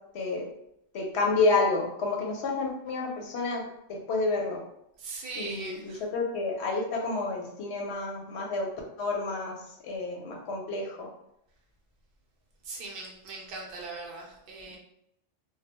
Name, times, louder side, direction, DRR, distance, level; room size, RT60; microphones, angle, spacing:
voice 1, 0.1-0.5 0.9-4.6 5.4-8.7 9.0-9.6 9.8-11.1, left 3 dB, 70° left, 0 dB, 0.8 m, -29 dB
voice 2, 5.0-6.0 12.6-14.8, right 3 dB, 55° right, -1 dB, 0.8 m, -40 dB
2.2 x 2.1 x 2.9 m, 0.78 s
omnidirectional pair, 1.2 m